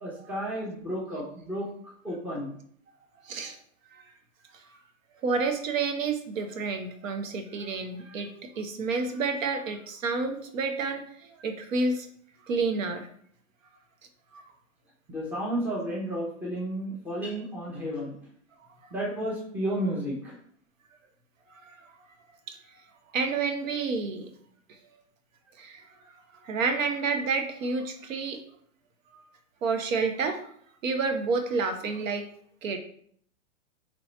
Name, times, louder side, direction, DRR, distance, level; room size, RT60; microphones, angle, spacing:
voice 1, 0.0-1.7 2.0-2.5 15.1-18.1 18.9-20.4, right 1 dB, 5° right, -5 dB, 0.6 m, -32 dB
voice 2, 3.2-3.6 3.9-4.0 5.2-11.0 11.4-12.1 12.5-13.1 14.3-14.4 21.5-21.8 22.5-22.6 23.1-24.3 25.6-25.8 26.4-28.4 29.1-29.2 29.6-30.4 30.8-32.3 32.6-32.8, right 4 dB, 75° right, 6 dB, 0.8 m, -29 dB
3.0 x 2.8 x 4.3 m, 0.63 s
hypercardioid pair, 150°, 39 cm